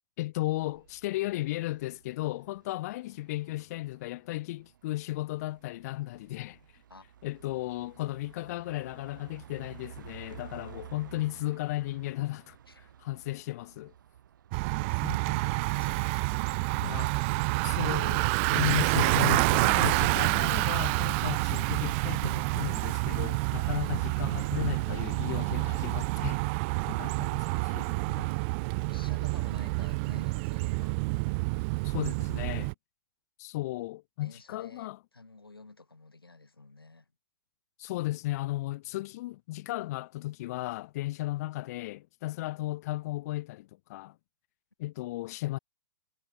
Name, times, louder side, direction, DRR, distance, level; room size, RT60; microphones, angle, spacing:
voice 1, 0.2-6.6 7.2-12.6 13.0-13.9 15.0-15.2 16.8-17.2 17.6-28.3 31.8-32.7 33.4-35.0 37.8-44.1 44.8-45.6, left 17 dB, 45° left, 1.4 m, -35 dB
sound 1, 0.6-14.8, right 10 dB, 60° right, 6.0 m, -53 dB
Bicycle, 14.5-32.7, right 29 dB, 35° right, 0.4 m, -28 dB
voice 2, 14.7-18.0 28.8-31.0 34.2-37.1, left 3 dB, 85° left, 5.6 m, -51 dB
figure-of-eight pair, 115°, 12 cm